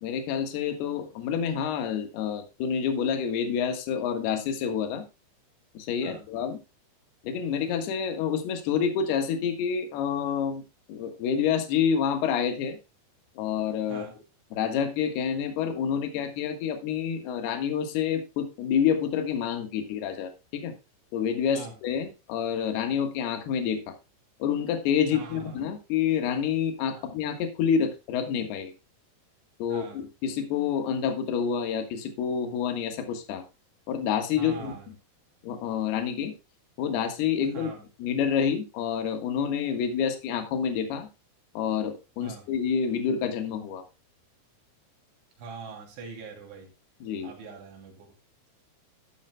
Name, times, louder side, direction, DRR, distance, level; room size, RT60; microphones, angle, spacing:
voice 1, 0.0-5.0 5.7-6.6 7.2-10.6 10.9-12.8 13.4-14.0 14.5-20.7 21.1-23.9 24.4-28.7 29.6-33.4 33.9-34.9 35.4-36.3 36.8-37.7 38.0-41.1 41.5-43.8 47.0-47.3, left 7 dB, 65° left, 6 dB, 3.1 m, -28 dB
voice 2, 25.1-25.6 26.9-27.1 29.7-30.0 34.4-34.9 37.5-37.8 42.2-42.4 45.4-46.7 47.2-48.1, right 4 dB, 70° right, 0 dB, 5.0 m, -42 dB
12.5 x 12.0 x 2.3 m, 0.28 s
omnidirectional pair, 5.6 m